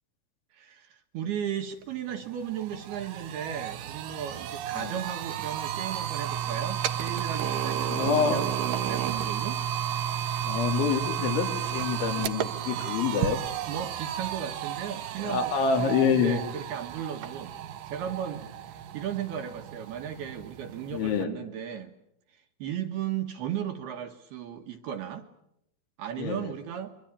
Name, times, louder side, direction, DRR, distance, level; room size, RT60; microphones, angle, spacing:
voice 1, 0.5-9.6 13.6-17.5 17.9-21.9 22.3-25.3 26.0-26.9, right 9 dB, 70° right, 5 dB, 2.7 m, -36 dB
sound 1, 1.8-1.9 2.2-21.2, right 10 dB, 85° right, 1.9 m, -33 dB
voice 2, 7.9-8.4 10.4-13.4 15.2-16.4 20.9-21.3 26.2-26.5, left 6 dB, 70° left, 5 dB, 4.9 m, -27 dB
28.0 x 23.5 x 8.7 m, 0.80 s
omnidirectional pair, 5.7 m